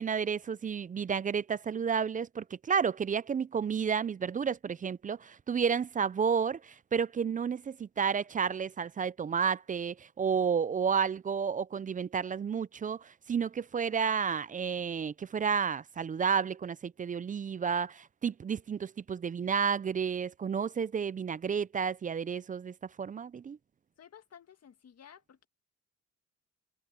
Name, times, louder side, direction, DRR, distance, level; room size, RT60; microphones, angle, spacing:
voice 1, 0.0-23.6, right 6 dB, 25° right, 0.4 m, -31 dB
voice 2, 24.0-25.5, left 8 dB, 50° left, 2.0 m, -54 dB
cardioid pair, 90°, 32 cm